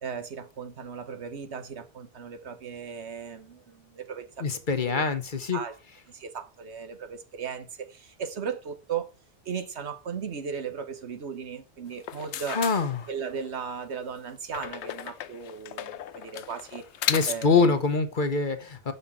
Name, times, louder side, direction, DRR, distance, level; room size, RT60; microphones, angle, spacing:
voice 1, 0.0-5.0 5.5-5.8 6.1-9.1 9.4-12.6 13.1-16.8 17.3-17.8, right 6 dB, 75° right, 1.4 m, -37 dB
voice 2, 4.4-5.6 12.6-13.0 17.1-18.9, left 4 dB, 50° left, 1.1 m, -24 dB
sound 1, 11.9-13.5 14.5-17.7, left 10 dB, 80° left, 0.9 m, -35 dB
6.6 x 5.5 x 7.2 m
omnidirectional pair, 1.1 m